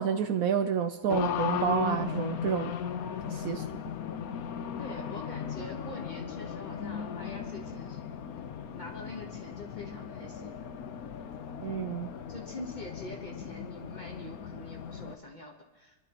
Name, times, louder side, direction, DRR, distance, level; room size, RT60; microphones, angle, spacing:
voice 1, 0.0-2.7 3.3-3.7 11.6-12.1, right 8 dB, 70° right, 8 dB, 0.9 m, -29 dB
Race car auto racing, 1.1-15.2, left 7 dB, 65° left, 1.2 m, -37 dB
voice 2, 4.8-8.0 8.7-10.6 12.3-16.0, left 2 dB, 30° left, 2 dB, 1.2 m, -44 dB
25.5 x 11.5 x 3.0 m, 1.2 s
omnidirectional pair, 1.8 m